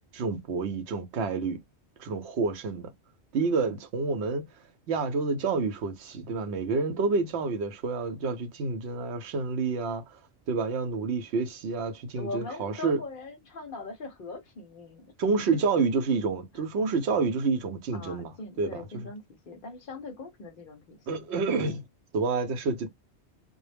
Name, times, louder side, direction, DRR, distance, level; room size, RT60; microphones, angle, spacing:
voice 1, 0.1-1.6 2.0-2.9 3.3-4.4 4.9-10.2 10.5-13.0 15.2-19.1 21.1-21.9 22.1-22.9, right 4 dB, 75° right, 0.8 m, -29 dB
voice 2, 12.1-15.1 17.9-21.2, left 3 dB, 55° left, 0.8 m, -41 dB
2.1 x 2.0 x 3.2 m
omnidirectional pair, 1.2 m